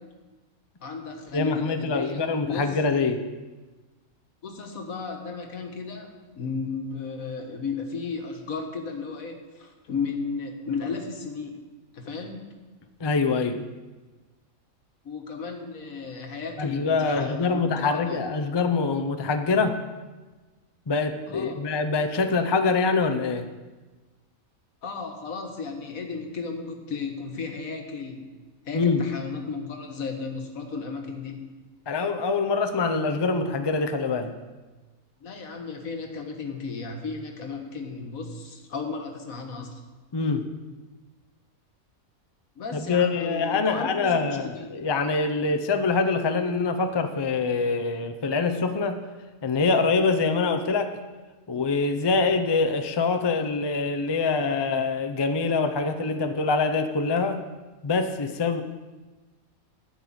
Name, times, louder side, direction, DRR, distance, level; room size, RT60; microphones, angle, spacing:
voice 1, 0.8-2.7 4.4-11.6 11.9-12.5 15.1-18.2 21.3-21.6 24.8-28.3 28.7-31.4 35.2-39.8 42.6-44.7, left 4 dB, 80° left, 4 dB, 1.8 m, -34 dB
voice 2, 1.3-3.2 13.0-13.6 16.6-19.8 20.9-23.5 28.7-29.0 31.9-34.3 40.1-40.5 42.7-49.0 49.4-51.0 51.5-57.4 57.8-58.6, left 4 dB, 30° left, 6 dB, 0.5 m, -24 dB
11.0 x 5.5 x 8.8 m, 1.3 s
omnidirectional pair, 1.4 m